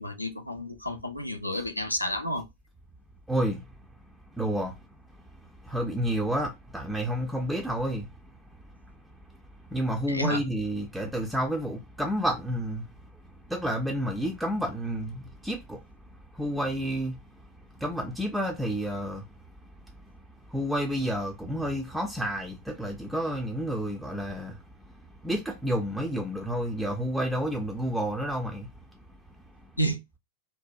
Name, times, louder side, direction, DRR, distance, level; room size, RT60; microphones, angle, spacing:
voice 1, 0.0-2.5 10.1-10.4 29.8-30.0, equal, 85° left, 0.4 m, -30 dB
voice 2, 3.3-3.7 4.3-4.7 5.4-8.1 9.7-12.9 13.5-15.8 16.3-17.2 17.7-19.3 20.5-24.6 24.9-25.0 25.2-28.7, equal, 5° right, 0.4 m, -30 dB
2.5 x 2.1 x 2.3 m
figure-of-eight pair, 90°, 0 cm